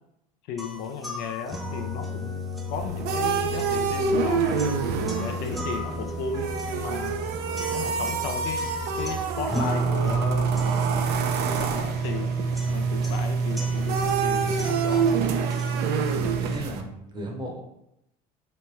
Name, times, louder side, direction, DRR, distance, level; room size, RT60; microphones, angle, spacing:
voice 1, 0.5-4.6 5.2-7.2 7.7-10.5 11.1-12.3 12.7-15.2, left 6 dB, 65° left, 6 dB, 0.4 m, -35 dB
sound 1, 0.6-16.6, right 3 dB, ahead, 0.4 m, -30 dB
sound 2, 2.7-16.8, right 6 dB, 60° right, 0.4 m, -28 dB
voice 2, 16.4-17.6, right 1 dB, 25° right, 1 dB, 0.8 m, -35 dB
3.0 x 2.2 x 2.9 m, 0.80 s
supercardioid pair, 90°, 19 cm